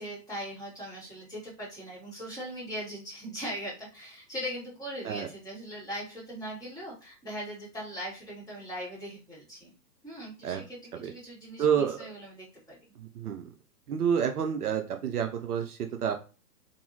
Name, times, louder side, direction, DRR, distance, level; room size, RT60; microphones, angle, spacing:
voice 1, 0.0-9.7 10.0-12.8, equal, 5° left, -8 dB, 1.4 m, -40 dB
voice 2, 11.6-12.0 13.0-13.5 13.9-16.2, right 8 dB, 65° right, 5 dB, 0.6 m, -29 dB
2.6 x 2.5 x 2.8 m, 0.35 s
figure-of-eight pair, 120°, 50 cm